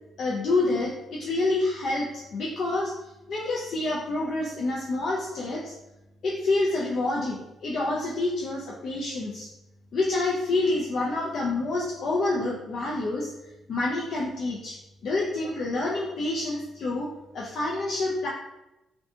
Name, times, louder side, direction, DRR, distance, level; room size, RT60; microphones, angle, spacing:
voice 1, 0.2-2.9 3.3-5.7 6.2-9.5 9.9-13.3 13.7-14.8 15.0-17.1 17.3-18.3, left 2 dB, 60° left, -3 dB, 0.4 m, -27 dB
2.6 x 2.1 x 2.7 m, 0.93 s
cardioid pair, 120°, 0 cm